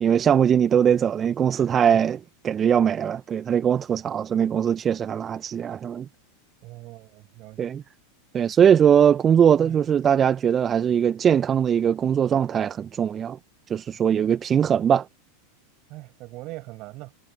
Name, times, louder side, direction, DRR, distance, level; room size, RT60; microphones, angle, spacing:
voice 1, 0.0-6.0 7.6-7.8 8.3-13.4 13.7-15.0, right 8 dB, 30° right, 1.4 m, -21 dB
voice 2, 6.6-7.7 9.6-9.8 14.1-14.3 15.9-17.1, right 21 dB, 45° right, 6.4 m, -41 dB
figure-of-eight pair, 90°, 0 cm